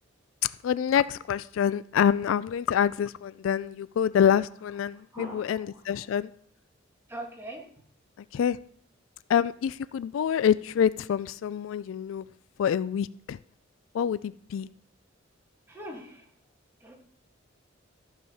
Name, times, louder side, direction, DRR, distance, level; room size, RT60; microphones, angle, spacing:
voice 1, 0.6-6.3 8.3-8.6 9.3-12.3 12.6-13.4 13.9-14.7, left 8 dB, 70° left, 17 dB, 0.3 m, -26 dB
voice 2, 5.1-5.6 7.1-7.6 15.7-16.3 16.8-16.9, right 1 dB, 10° right, 0 dB, 1.9 m, -41 dB
13.5 x 4.9 x 5.5 m, 0.63 s
head